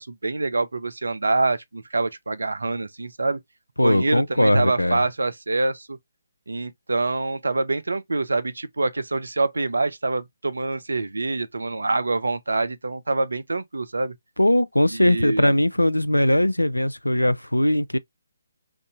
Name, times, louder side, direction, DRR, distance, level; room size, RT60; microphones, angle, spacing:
voice 1, 0.0-3.4 3.8-6.0 6.5-14.1 14.9-15.5, right 3 dB, 65° right, 0.4 m, -25 dB
voice 2, 3.8-5.0 14.4-18.0, left 1 dB, 85° left, 0.3 m, -20 dB
3.5 x 2.6 x 2.4 m
figure-of-eight pair, 145°, 0 cm